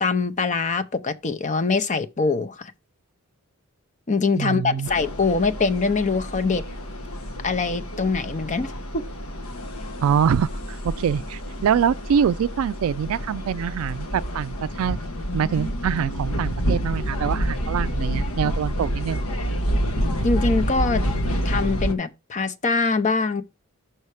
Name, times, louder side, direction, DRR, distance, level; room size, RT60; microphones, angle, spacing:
voice 1, 0.0-2.7 4.1-6.6 7.4-9.0 20.2-21.0 21.4-23.4, left 4 dB, 35° left, 0.6 m, -23 dB
voice 2, 4.4-4.9 10.0-15.0 15.3-19.2, right 7 dB, 70° right, 0.3 m, -24 dB
sound 1, 4.9-21.9, equal, 80° left, 1.1 m, -28 dB
5.7 x 5.5 x 4.7 m
head